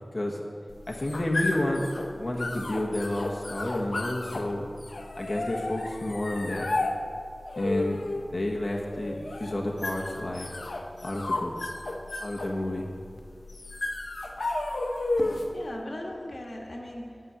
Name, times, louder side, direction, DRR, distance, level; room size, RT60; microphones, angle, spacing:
sound 1, 0.7-15.6, left 2 dB, 90° left, 0.8 m, -33 dB
voice 1, 0.9-1.9 2.2-4.7 5.2-6.7 7.6-8.0 8.3-10.5 11.0-11.5 12.2-12.9, left 1 dB, 45° left, -2 dB, 1.3 m, -30 dB
voice 2, 15.2-17.2, left 1 dB, 65° left, 0 dB, 1.5 m, -39 dB
11.0 x 6.1 x 8.4 m, 2.4 s
wide cardioid pair, 65°, 0 cm